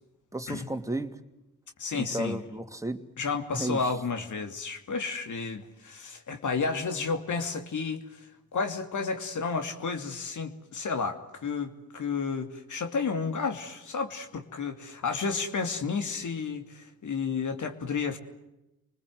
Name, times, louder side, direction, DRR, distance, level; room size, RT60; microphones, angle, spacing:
voice 1, 0.3-1.2 2.0-3.0 3.5-3.9, right 1 dB, 10° right, 7 dB, 2.7 m, -33 dB
voice 2, 1.8-2.4 3.2-18.2, left 5 dB, 60° left, 6 dB, 2.9 m, -32 dB
30.0 x 20.5 x 8.0 m, 0.95 s
supercardioid pair, 60°, 33 cm